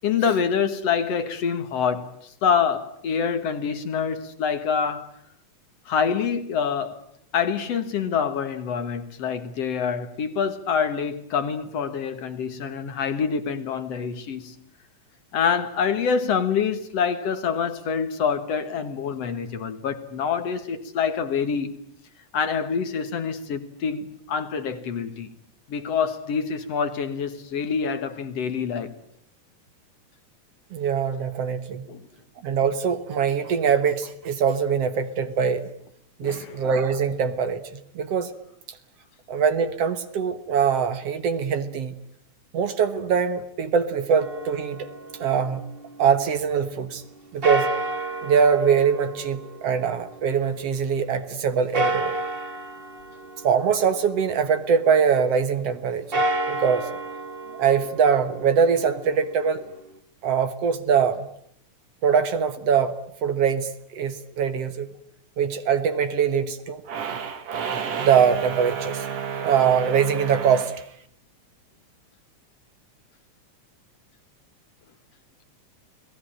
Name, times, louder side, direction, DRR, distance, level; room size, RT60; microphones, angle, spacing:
voice 1, 0.0-2.1 2.4-5.1 5.9-7.0 7.3-14.6 15.3-21.7 22.3-25.3 25.7-28.9 31.9-32.0 36.2-36.5, left 6 dB, 60° left, 2.5 m, -26 dB
voice 2, 30.7-31.9 32.4-35.7 36.2-38.3 39.3-42.0 42.5-44.9 45.2-45.7 46.0-47.0 47.3-47.7 48.2-52.2 53.4-56.9 57.6-59.6 60.2-61.3 62.0-64.9 65.4-70.9, right 7 dB, 60° right, 2.1 m, -23 dB
sound 1, 44.2-46.3 47.4-50.8 51.7-54.7 56.0-60.0, right 1 dB, 30° right, 1.1 m, -31 dB
29.5 x 19.5 x 8.8 m
omnidirectional pair, 3.4 m